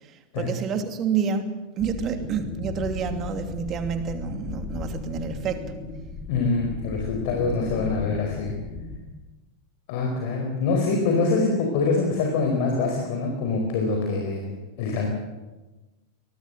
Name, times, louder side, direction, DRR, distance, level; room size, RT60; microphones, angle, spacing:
voice 1, 0.4-5.6, right 6 dB, 30° right, 7 dB, 2.8 m, -28 dB
sound 1, 1.8-8.9, left 4 dB, 25° left, 4.5 m, -36 dB
voice 2, 6.3-8.6 9.9-15.1, left 3 dB, 50° left, 2 dB, 4.6 m, -25 dB
23.5 x 19.5 x 7.9 m, 1.2 s
figure-of-eight pair, 90°, 0 cm